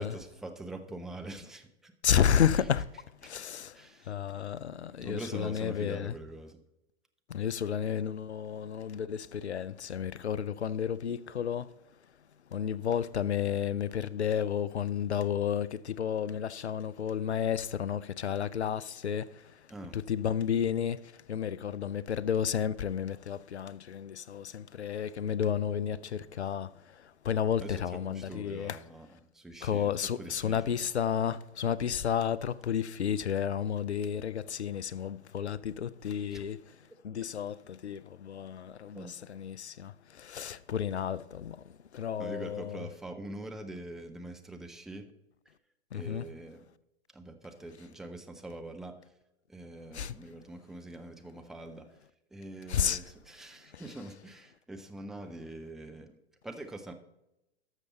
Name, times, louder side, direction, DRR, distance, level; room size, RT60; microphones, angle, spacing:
voice 1, 0.0-1.9 3.2-3.4 3.7-4.1 5.0-6.6 19.7-20.0 27.6-30.7 36.3-36.4 38.9-39.3 42.2-45.1 45.9-46.6 47.1-49.0 49.5-51.9 52.3-56.2 56.4-56.9, right 2 dB, ahead, 0.3 m, -44 dB
voice 2, 2.0-2.8 3.2-3.7 4.1-6.2 7.3-11.6 12.5-19.2 19.9-21.0 21.3-26.7 27.3-28.8 29.6-36.6 37.0-37.6 37.8-39.9 40.3-41.6 41.9-42.9 45.9-46.2 49.9-50.1 52.7-53.0, left 8 dB, 80° left, 0.6 m, -31 dB
12.5 x 6.6 x 4.1 m
figure-of-eight pair, 110°, 33 cm